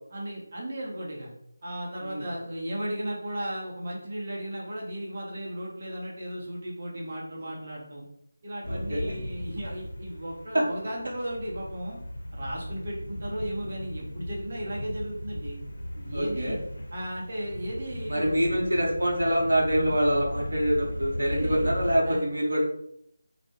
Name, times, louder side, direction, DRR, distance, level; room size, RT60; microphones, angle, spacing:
voice 1, 0.1-1.3 1.6-8.0 8.4-12.0 12.3-15.6 15.9-16.6 16.9-18.5 21.3-21.7 22.0-22.2, right 1 dB, 45° right, -3 dB, 0.7 m, -35 dB
sound 1, 8.6-22.0, equal, 70° left, 0.5 m, -37 dB
voice 2, 8.7-9.1 10.5-10.6 16.1-16.5 18.1-22.6, equal, 75° right, -2 dB, 0.8 m, -25 dB
2.2 x 2.0 x 2.9 m, 0.73 s
figure-of-eight pair, 165°, 0 cm